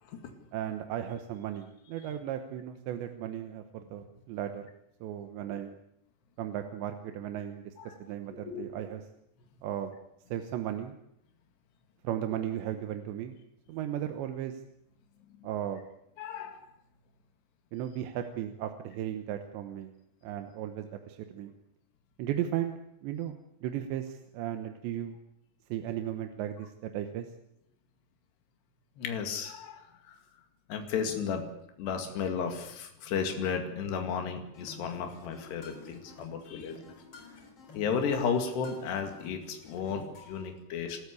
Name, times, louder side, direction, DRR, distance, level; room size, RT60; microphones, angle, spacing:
voice 1, 0.5-4.6 5.0-5.8 6.4-9.0 9.6-9.9 10.3-10.9 12.0-13.4 13.7-14.6 15.4-15.8 17.7-19.9 20.2-21.5 22.2-25.2 25.7-27.3, right 11 dB, 85° right, 7 dB, 3.4 m, -36 dB
voice 2, 16.2-16.6 29.0-30.2 30.7-31.5 31.8-36.9 37.7-41.0, left 6 dB, 75° left, 5 dB, 4.3 m, -33 dB
sound 1, 34.5-40.5, left 3 dB, 35° left, 4.4 m, -52 dB
27.5 x 13.5 x 8.4 m, 0.79 s
omnidirectional pair, 5.0 m